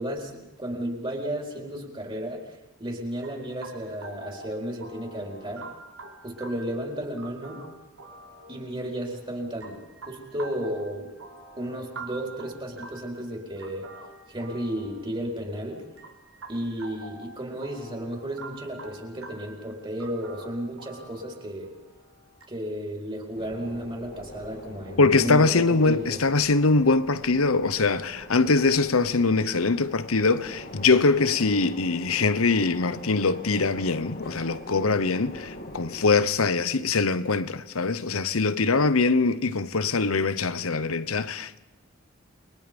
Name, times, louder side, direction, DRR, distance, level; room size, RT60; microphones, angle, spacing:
voice 1, 0.0-5.7 6.2-7.6 8.5-11.1 11.6-13.9 14.3-15.9 16.5-21.7 22.5-26.2, equal, 25° right, 4.5 m, -33 dB
sound 1, 3.2-22.4, right 3 dB, 80° right, 4.2 m, -46 dB
sound 2, 23.3-36.2, left 1 dB, 50° left, 3.1 m, -42 dB
voice 2, 25.0-41.6, left 3 dB, 85° left, 1.0 m, -23 dB
29.0 x 23.0 x 5.4 m
head